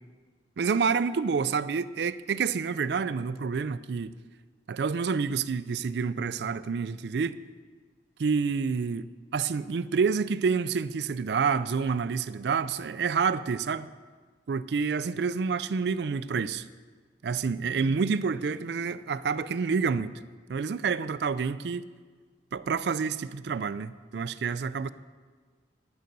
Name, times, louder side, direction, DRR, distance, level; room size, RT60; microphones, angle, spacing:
voice 1, 0.6-4.1 4.7-7.4 8.2-9.1 9.3-13.9 14.5-16.6 17.2-20.1 20.5-21.9 22.5-24.9, right 5 dB, 65° right, 0.4 m, -28 dB
10.0 x 9.3 x 5.3 m
head